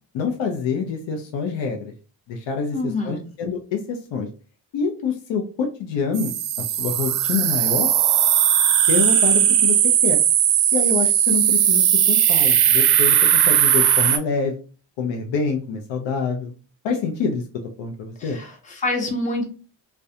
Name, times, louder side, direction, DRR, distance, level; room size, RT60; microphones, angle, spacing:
voice 1, 0.1-1.9 2.3-4.3 4.7-6.3 6.8-7.9 8.9-9.8 10.0-10.2 10.7-14.5 15.0-16.5 16.8-17.4 17.8-18.4, left 5 dB, 65° left, 3 dB, 0.6 m, -26 dB
voice 2, 2.7-3.2 18.2-19.4, left 2 dB, 15° left, 1 dB, 0.7 m, -26 dB
sound 1, 6.1-14.2, right 10 dB, 55° right, 0.5 m, -18 dB
2.3 x 2.2 x 2.7 m, 0.37 s
supercardioid pair, 50°, 47 cm